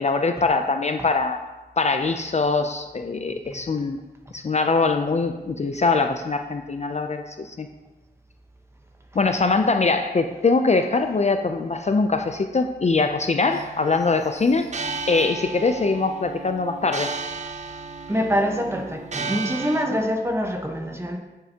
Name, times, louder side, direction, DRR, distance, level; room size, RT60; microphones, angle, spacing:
voice 1, 0.0-1.4 1.8-4.0 4.3-7.7 9.1-14.7 15.1-17.1, left 3 dB, 40° left, 6 dB, 0.4 m, -22 dB
sound 1, 13.5-19.9, right 4 dB, 45° right, 0.4 m, -34 dB
voice 2, 18.1-21.2, equal, 15° right, 2 dB, 1.0 m, -25 dB
8.8 x 6.7 x 2.8 m, 1.1 s
wide cardioid pair, 85°, 17 cm